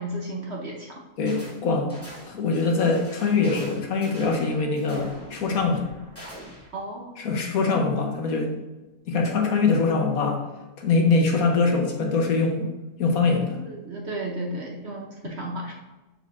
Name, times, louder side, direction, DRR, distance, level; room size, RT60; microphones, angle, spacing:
voice 1, 0.0-1.0 6.7-7.2 13.6-15.7, right 1 dB, 55° right, 0 dB, 0.8 m, -33 dB
voice 2, 1.2-1.9 2.2-5.8 7.2-8.6 9.1-10.4 10.8-12.7 13.0-13.6 15.2-15.3, left 4 dB, 65° left, 2 dB, 1.3 m, -23 dB
sound 1, 1.3-1.6 1.9-6.7, equal, 10° left, 2.3 m, -44 dB
6.8 x 6.7 x 2.5 m, 1.1 s
omnidirectional pair, 1.7 m